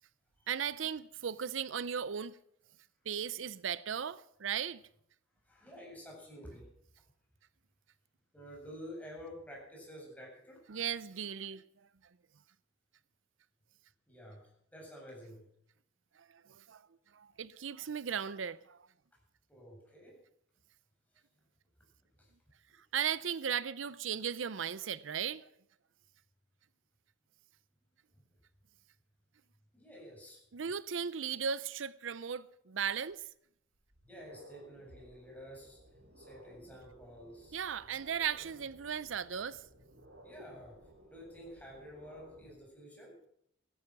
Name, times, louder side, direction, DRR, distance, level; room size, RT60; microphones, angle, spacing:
voice 1, 0.5-2.4 3.1-4.8 10.7-11.6 16.2-16.8 17.1-18.8 22.8-25.5 30.5-33.3 37.5-39.6, right 7 dB, 90° right, 0.6 m, -37 dB
voice 2, 5.4-6.7 8.3-10.6 14.1-15.5 19.5-20.2 22.2-22.3 28.1-28.2 29.7-30.4 34.1-35.8 36.2-37.6 40.2-43.2, equal, 10° left, 7.8 m, -50 dB
sound 1, 33.1-33.2 33.7-42.5, equal, 65° right, 5.1 m, -58 dB
16.5 x 14.0 x 6.0 m
head